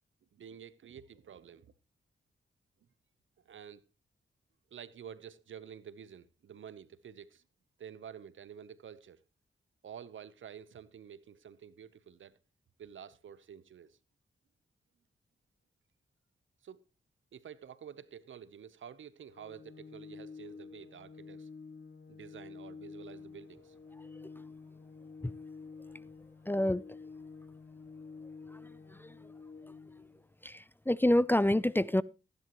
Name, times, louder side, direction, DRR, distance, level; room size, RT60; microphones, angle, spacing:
voice 1, 0.3-1.7 3.5-3.8 4.7-7.4 7.8-9.2 9.8-12.4 12.8-14.0 16.6-16.8 17.3-21.5 22.1-23.7, right 8 dB, 75° right, 0.9 m, -50 dB
Organ, 19.3-30.3, left 4 dB, 75° left, 1.8 m, -50 dB
voice 2, 26.5-26.8 28.5-28.6 29.0-29.1 30.4-32.0, left 1 dB, 10° left, 0.5 m, -27 dB
15.0 x 10.5 x 3.1 m
cardioid pair, 50°, 20 cm